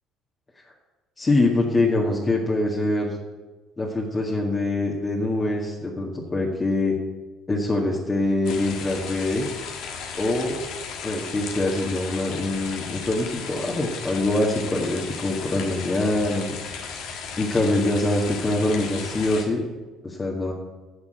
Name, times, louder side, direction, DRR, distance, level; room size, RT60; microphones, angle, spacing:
voice 1, 1.2-3.1 3.8-7.0 7.5-9.4 10.2-10.5 11.0-16.6 17.4-19.6 20.0-20.5, left 2 dB, 25° left, -2 dB, 1.9 m, -24 dB
sound 1, 8.5-19.5, left 6 dB, 65° left, 1.6 m, -35 dB
9.9 x 6.0 x 8.0 m, 1.2 s
hypercardioid pair, 60°, 0 cm